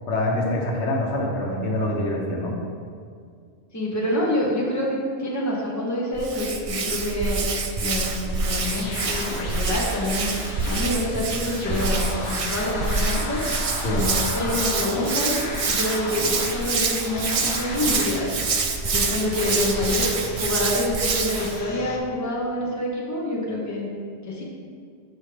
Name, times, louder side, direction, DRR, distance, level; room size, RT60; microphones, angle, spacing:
voice 1, 0.1-2.5 13.8-14.1, left 1 dB, 80° left, -1 dB, 1.2 m, -25 dB
voice 2, 3.7-7.5 7.8-10.4 10.7-13.4 13.9-15.4 15.7-18.3 18.9-23.9 24.3-24.4, left 1 dB, 15° left, -4 dB, 0.9 m, -27 dB
Hands, 6.1-21.6, right 4 dB, 60° right, 0.3 m, -26 dB
sound 1, 7.7-14.0, equal, 30° right, 1.8 m, -49 dB
sound 2, 8.2-22.0, left 2 dB, 65° left, 1.1 m, -35 dB
7.3 x 4.9 x 3.3 m, 2.2 s
omnidirectional pair, 1.2 m